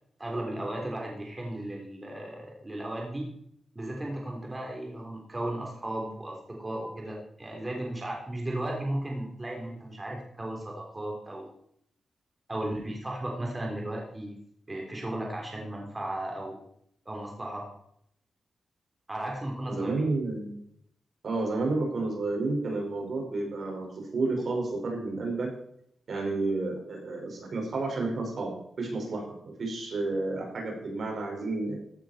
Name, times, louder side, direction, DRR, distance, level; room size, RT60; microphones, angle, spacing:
voice 1, 0.2-3.3 3.8-11.5 12.5-14.4 14.7-16.6 17.1-17.7 19.1-20.0, right 1 dB, 25° right, -1 dB, 3.7 m, -35 dB
voice 2, 19.7-20.6 21.2-23.9 24.1-25.5 26.1-28.5 28.8-31.8, right 3 dB, 60° right, 0 dB, 5.3 m, -31 dB
15.5 x 9.1 x 4.4 m, 0.70 s
cardioid pair, 65°, 0 cm